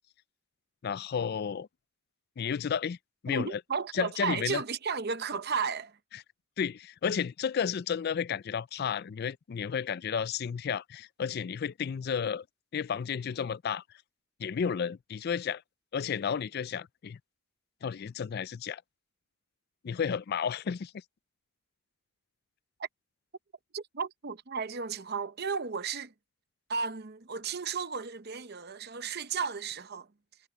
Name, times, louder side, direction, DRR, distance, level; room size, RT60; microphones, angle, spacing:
voice 1, 0.8-1.7 2.4-3.0 3.2-3.6 3.9-4.6 6.1-6.2 6.6-12.5 12.7-13.8 14.4-15.6 15.9-17.2 17.8-18.8 19.8-21.0, left 7 dB, 45° left, 0.3 m, -32 dB
voice 2, 3.3-6.0 22.8-22.9 23.7-26.1 26.7-30.1, right 5 dB, 45° right, 0.8 m, -34 dB
head